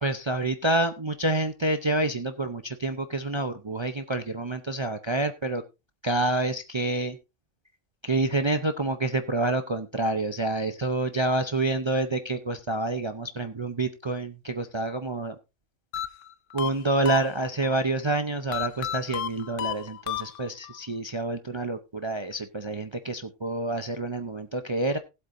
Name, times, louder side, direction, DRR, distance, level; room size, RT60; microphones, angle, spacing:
voice 1, 0.0-5.6 6.0-7.2 8.0-15.3 16.5-25.0, right 2 dB, 30° right, 8 dB, 0.6 m, -28 dB
sound 1, 15.9-17.8 18.5-20.8, left 10 dB, 75° left, 1.0 m, -33 dB
19.0 x 8.0 x 2.6 m, 0.27 s
omnidirectional pair, 1.3 m